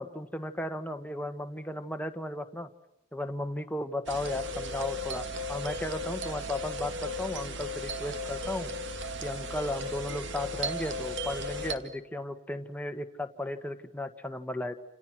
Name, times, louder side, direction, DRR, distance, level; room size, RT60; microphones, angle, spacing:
voice 1, 0.0-2.7 3.1-8.7 9.2-14.7, left 1 dB, 10° left, 7 dB, 1.5 m, -35 dB
sound 1, 4.1-11.8, equal, 65° right, 2.2 m, -35 dB
29.0 x 28.5 x 6.1 m, 0.83 s
head